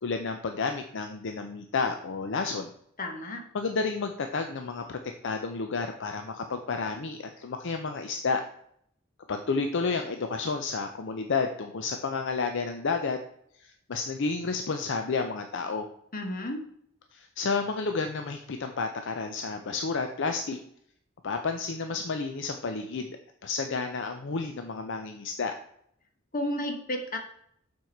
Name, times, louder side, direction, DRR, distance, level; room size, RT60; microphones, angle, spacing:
voice 1, 0.0-2.7 3.5-8.4 9.3-13.2 13.6-15.9 17.1-20.6 21.2-23.1 23.4-25.5, left 4 dB, 60° left, 6 dB, 0.6 m, -31 dB
voice 2, 3.0-3.4 16.1-16.6 26.3-27.2, left 1 dB, 45° left, 4 dB, 1.2 m, -32 dB
7.1 x 4.6 x 4.5 m, 0.69 s
head